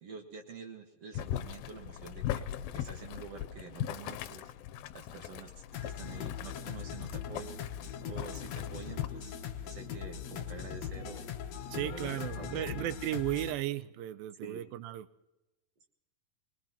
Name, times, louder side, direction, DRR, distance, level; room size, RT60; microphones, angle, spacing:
voice 1, 0.0-2.5 2.7-4.5 4.9-7.6 8.0-9.4 9.6-11.3 11.7-12.9 14.4-14.6, right 4 dB, 55° right, 3 dB, 2.2 m, -47 dB
Boiling, 1.1-9.1, left 11 dB, 85° left, 2.5 m, -40 dB
sound 1, 5.7-13.5, left 8 dB, 65° left, 1.8 m, -40 dB
voice 2, 11.7-15.1, right 13 dB, 85° right, 14 dB, 2.5 m, -35 dB
23.5 x 20.5 x 2.9 m, 0.98 s
omnidirectional pair, 4.1 m